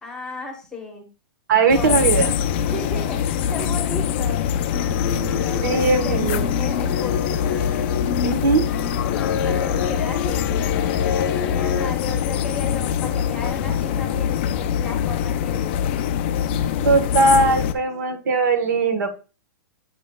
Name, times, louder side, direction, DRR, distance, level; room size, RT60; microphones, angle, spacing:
voice 1, 0.0-1.1 1.7-2.3 2.6-4.4 5.4-6.2 6.6-7.4 9.4-10.4 11.5-16.0, left 3 dB, 5° left, 2 dB, 1.0 m, -34 dB
voice 2, 1.5-2.3 5.6-6.5 8.2-8.6 16.8-19.1, right 4 dB, 60° right, 7 dB, 1.2 m, -19 dB
sound 1, 1.7-17.7, left 9 dB, 30° left, 0.4 m, -23 dB
sound 2, 4.7-11.9, left 6 dB, 80° left, 0.8 m, -28 dB
8.3 x 5.5 x 2.2 m, 0.32 s
hypercardioid pair, 170°, 11 cm